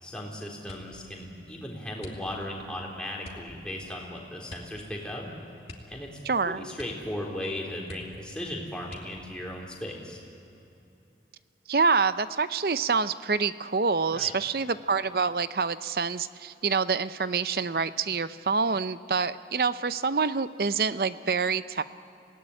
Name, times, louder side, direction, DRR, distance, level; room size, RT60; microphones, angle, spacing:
voice 1, 0.0-5.3 5.9-6.1 6.5-10.2 14.1-14.3, left 1 dB, 5° left, -2 dB, 3.7 m, -37 dB
sound 1, 0.6-1.1 2.0-2.6 3.2-3.5 4.5-4.8 5.1-5.2 5.6-6.4 6.7-7.2 7.5-7.6 7.8-8.4 8.8-9.4 10.1-10.7 11.1-11.5, left 1 dB, 35° left, 2.6 m, -47 dB
voice 2, 6.2-6.6 11.7-21.8, right 5 dB, 55° right, 13 dB, 0.7 m, -26 dB
26.5 x 18.0 x 9.9 m, 2.8 s
head